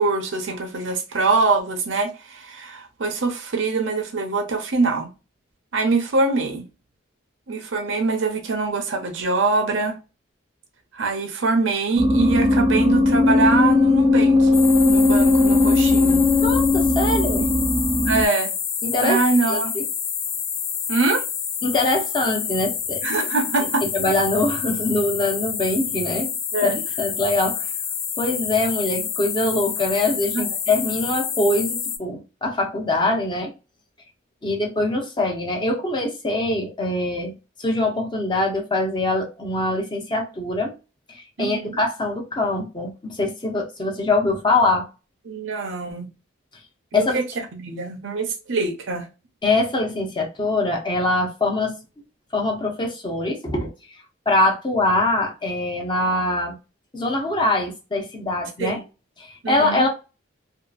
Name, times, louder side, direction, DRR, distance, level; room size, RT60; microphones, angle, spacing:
voice 1, 0.0-5.1 5.7-6.7 7.5-10.0 10.9-16.3 18.0-18.5 19.0-19.7 20.9-21.2 23.0-23.9 26.5-26.7 30.3-30.5 41.4-41.8 45.3-46.1 46.9-47.2 47.5-49.1 58.6-58.8 59.4-59.8, right 3 dB, 75° right, 0.6 m, -23 dB
sound 1, 12.0-18.2, left 2 dB, 20° right, 0.3 m, -18 dB
sound 2, 14.5-32.0, left 7 dB, 85° left, 0.6 m, -28 dB
voice 2, 16.4-17.4 18.8-19.2 19.5-19.8 21.6-23.0 23.9-26.3 26.6-27.7 28.2-33.5 34.4-37.3 37.6-40.7 41.1-44.9 46.9-47.2 49.4-51.7 52.3-53.7 54.3-56.6 56.9-58.8 59.2-59.9, left 2 dB, 25° left, 0.6 m, -23 dB
2.6 x 2.4 x 2.3 m
head